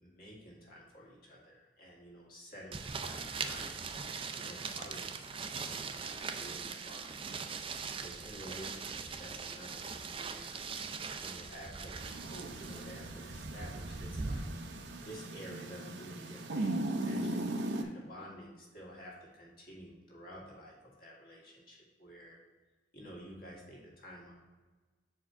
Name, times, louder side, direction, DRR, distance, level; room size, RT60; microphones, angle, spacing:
voice 1, 0.0-3.8 4.4-7.2 7.9-10.6 11.2-14.5 15.0-22.4 22.9-24.3, equal, 55° left, -4 dB, 1.9 m, -51 dB
sound 1, 2.7-14.4, right 5 dB, 30° right, 0.4 m, -41 dB
sound 2, 12.0-17.8, right 1 dB, 90° right, 0.6 m, -38 dB
4.7 x 4.4 x 5.9 m, 1.3 s
head